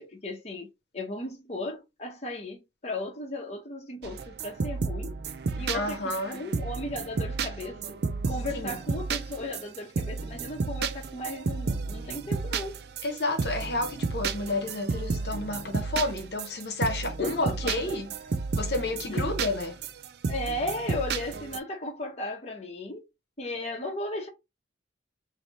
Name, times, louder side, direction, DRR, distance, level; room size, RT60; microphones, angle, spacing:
voice 1, 0.0-5.1 5.6-8.0 8.3-12.7 17.2-18.0 19.1-19.3 20.3-23.0 23.4-24.3, left 1 dB, 35° left, 1.0 m, -36 dB
sound 1, 4.0-21.6, right 4 dB, 60° right, 0.4 m, -32 dB
voice 2, 5.7-6.4 8.5-8.8 13.0-18.1 18.5-19.8, left 2 dB, 60° left, 1.0 m, -30 dB
3.3 x 2.8 x 4.0 m
head